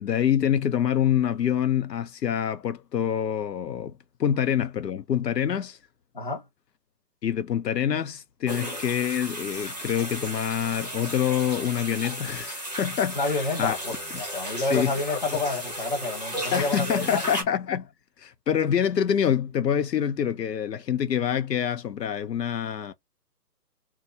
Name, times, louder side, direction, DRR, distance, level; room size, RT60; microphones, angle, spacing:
voice 1, 0.0-3.9 4.2-5.8 7.2-13.8 14.1-14.2 14.7-15.2 16.5-17.9 18.2-22.9, left 9 dB, 80° left, 0.8 m, -26 dB
voice 2, 6.1-6.5 13.2-17.3, left 3 dB, 30° left, 0.9 m, -29 dB
sound 1, 8.5-17.4, equal, 25° right, 0.6 m, -35 dB
2.8 x 2.3 x 3.7 m
hypercardioid pair, 175°, 48 cm